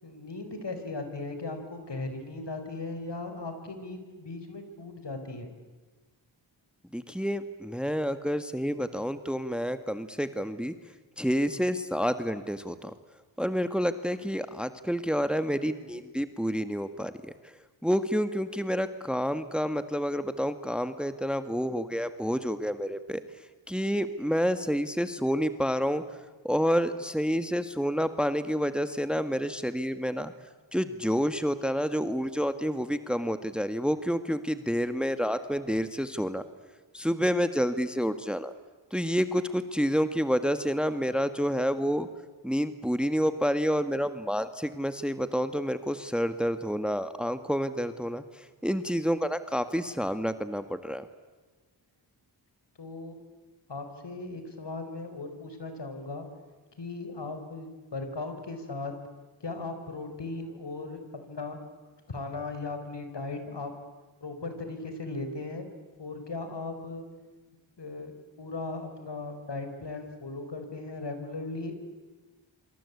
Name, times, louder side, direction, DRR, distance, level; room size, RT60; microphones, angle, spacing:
voice 1, 0.0-5.5 52.8-53.1 53.7-56.3 56.8-58.9 59.4-61.0 61.3-61.6 62.1-63.7 64.2-65.7 66.0-67.0 67.8-71.9, left 3 dB, 60° left, 7 dB, 5.2 m, -37 dB
voice 2, 6.9-10.7 11.2-12.9 13.4-17.5 17.8-23.2 23.7-26.0 26.4-30.3 30.7-36.4 36.9-38.5 38.9-42.1 42.4-51.1, equal, ahead, 11 dB, 1.6 m, -29 dB
27.0 x 26.0 x 8.5 m, 1.3 s
cardioid pair, 40°, 48 cm